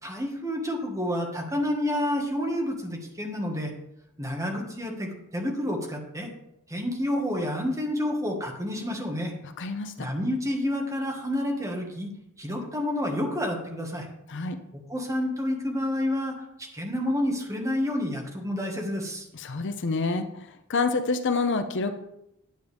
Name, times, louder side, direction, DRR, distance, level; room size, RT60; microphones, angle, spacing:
voice 1, 0.0-3.7 4.2-6.3 6.7-9.3 10.0-12.1 12.4-14.1 14.7-16.3 16.6-19.3, left 1 dB, 15° right, 1 dB, 1.5 m, -29 dB
voice 2, 9.6-10.1 14.3-14.6 19.3-20.3 20.7-21.9, left 3 dB, 55° left, 8 dB, 0.7 m, -27 dB
9.4 x 9.2 x 3.4 m, 0.83 s
head